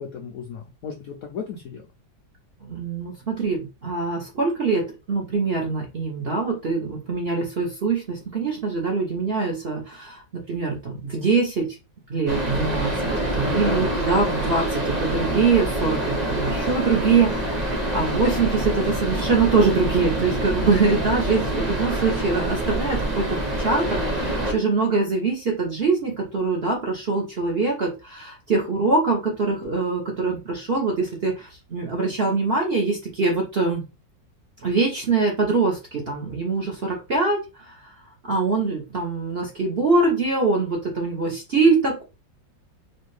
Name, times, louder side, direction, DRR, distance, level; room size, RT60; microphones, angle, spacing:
voice 1, 0.0-1.8 13.5-14.0, left 6 dB, 75° left, 2 dB, 0.8 m, -34 dB
voice 2, 2.6-4.8 5.1-11.7 12.1-13.0 13.3-33.8 34.6-37.9 38.2-42.0, right 4 dB, 45° right, 0 dB, 0.8 m, -23 dB
sound 1, 12.3-24.5, right 1 dB, 25° right, 1.2 m, -26 dB
4.3 x 2.4 x 3.2 m, 0.28 s
omnidirectional pair, 2.1 m